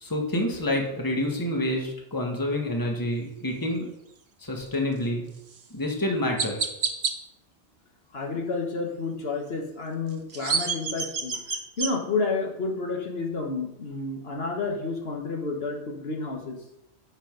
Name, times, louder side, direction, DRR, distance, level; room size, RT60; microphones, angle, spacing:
voice 1, 0.0-3.9 4.4-5.2 5.7-6.7, left 1 dB, 20° left, 1 dB, 1.4 m, -28 dB
Chirp tweet, 5.5-5.6 6.4-7.1 10.1-11.9, right 5 dB, 75° right, 1.2 m, -28 dB
voice 2, 8.1-16.6, left 3 dB, 65° left, 1 dB, 1.5 m, -30 dB
8.9 x 5.2 x 5.2 m, 0.83 s
omnidirectional pair, 1.1 m